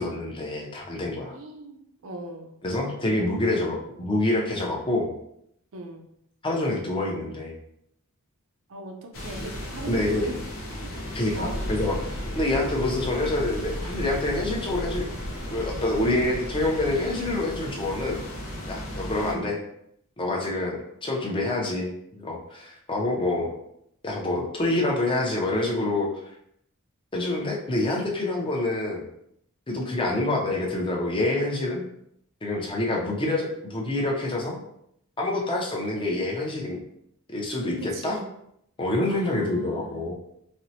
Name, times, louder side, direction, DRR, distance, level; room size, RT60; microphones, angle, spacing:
voice 1, 0.0-1.4 2.6-5.1 6.4-7.6 9.9-10.3 11.1-15.1 15.5-18.2 18.7-19.6 20.2-23.5 24.0-26.1 27.1-29.1 29.7-31.8 32.4-34.6 35.2-36.8 37.3-38.2 38.8-40.1, left 2 dB, 25° left, -1 dB, 0.6 m, -27 dB
voice 2, 1.3-2.5 5.7-6.0 8.7-10.4 11.3-11.6 19.1-19.5 37.9-38.2 39.1-40.0, right 2 dB, 65° right, 3 dB, 0.5 m, -39 dB
sound 1, 9.1-19.3, equal, 65° left, 0.7 m, -34 dB
4.2 x 2.0 x 2.7 m, 0.74 s
head